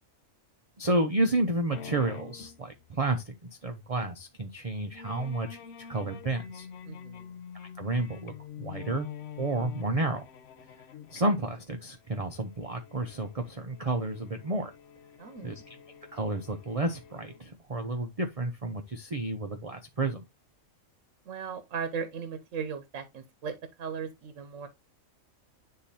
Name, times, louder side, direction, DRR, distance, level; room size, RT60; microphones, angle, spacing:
voice 1, 0.8-3.3 3.6-6.7 7.5-9.1 9.4-10.2 11.1-14.7 15.4-15.8 16.1-20.3, right 2 dB, 35° right, 0.6 m, -31 dB
sound 1, 1.7-3.3 3.7-3.8 4.1-4.2 4.9-17.6, left 8 dB, 60° left, 0.8 m, -46 dB
voice 2, 6.9-7.3 15.2-15.6 21.3-24.7, right 6 dB, 70° right, 1.2 m, -37 dB
10.0 x 3.8 x 2.7 m
omnidirectional pair, 1.4 m